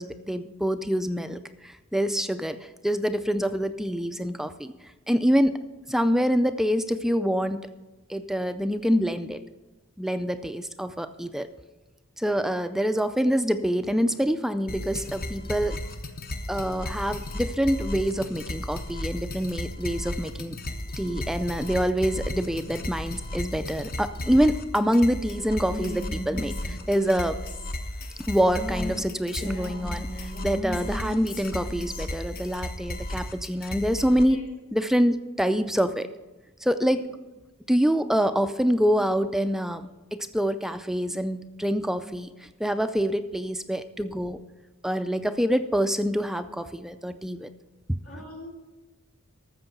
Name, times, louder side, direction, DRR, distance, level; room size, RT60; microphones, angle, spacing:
voice 1, 0.0-4.7 5.1-5.6 5.9-7.7 8.1-9.4 10.0-11.5 12.2-15.8 16.5-20.6 21.0-27.4 28.3-34.4 34.7-36.1 36.6-37.0 37.7-44.4 44.8-47.5 47.9-48.0, equal, ahead, 10 dB, 0.3 m, -26 dB
sound 1, 14.7-34.2, left 1 dB, 45° left, 0.9 m, -35 dB
Female speech woman speaking, 25.6-29.0 29.3-32.0, equal, 65° left, 3.4 m, -37 dB
voice 2, 48.0-48.5, left 1 dB, 85° left, -1 dB, 3.2 m, -40 dB
13.0 x 7.3 x 5.9 m, 1.2 s
head